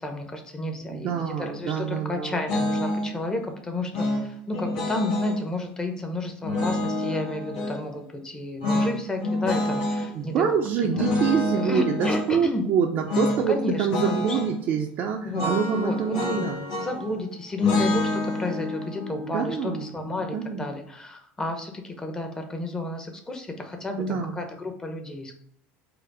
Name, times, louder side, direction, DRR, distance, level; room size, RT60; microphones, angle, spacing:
voice 1, 0.0-11.1 11.6-12.6 13.5-14.4 15.2-25.3, left 2 dB, 15° left, 4 dB, 0.8 m, -32 dB
voice 2, 0.9-2.4 10.1-16.6 19.3-19.8 20.3-20.7 24.0-24.4, right 7 dB, 50° right, 1 dB, 0.5 m, -26 dB
sound 1, 2.5-3.1 3.9-5.4 6.4-7.8 8.6-10.1 10.9-12.3 13.1-13.4 13.7-14.5 15.3-17.1 17.6-20.7, left 2 dB, 80° left, 1.5 m, -28 dB
4.9 x 2.0 x 4.7 m, 0.64 s
supercardioid pair, 110°, 5 cm